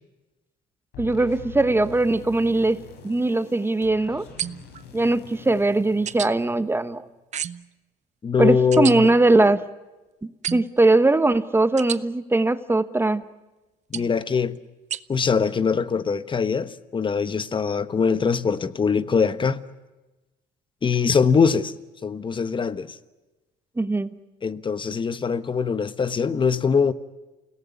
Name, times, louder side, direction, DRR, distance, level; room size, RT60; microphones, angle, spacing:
sound 1, 0.9-7.1, left 6 dB, 80° left, 5.7 m, -44 dB
voice 1, 1.0-2.8 3.0-4.2 4.9-7.0 8.4-9.7 10.2-13.2 23.8-24.1, right 2 dB, 15° right, 1.1 m, -20 dB
sound 2, 4.4-4.8 6.1-6.3 7.3-7.7 8.7-9.0 10.4-10.8 11.8-12.0 13.9-14.2 14.9-15.0, right 9 dB, 45° right, 0.8 m, -30 dB
voice 2, 8.2-9.5 13.9-14.6 15.1-19.6 20.8-21.7 22.0-22.9 24.4-26.9, left 5 dB, 30° left, 1.2 m, -22 dB
29.0 x 18.0 x 9.6 m
cardioid pair, 110°, 17 cm